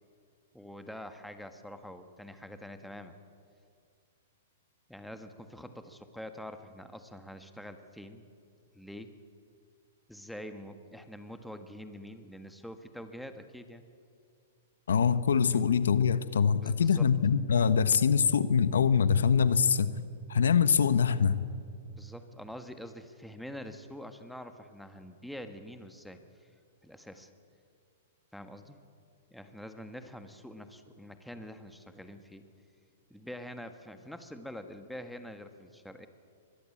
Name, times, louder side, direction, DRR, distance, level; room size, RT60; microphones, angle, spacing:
voice 1, 0.5-3.1 4.9-8.2 8.7-9.1 10.1-13.8 15.5-15.6 16.6-17.1 22.0-26.2 26.8-27.3 28.3-28.8 29.3-32.4 33.1-36.1, equal, ahead, 1.5 m, -45 dB
voice 2, 14.9-19.9 20.3-21.4, left 6 dB, 85° left, 1.1 m, -24 dB
23.5 x 20.5 x 8.6 m
hypercardioid pair, 135°, 0 cm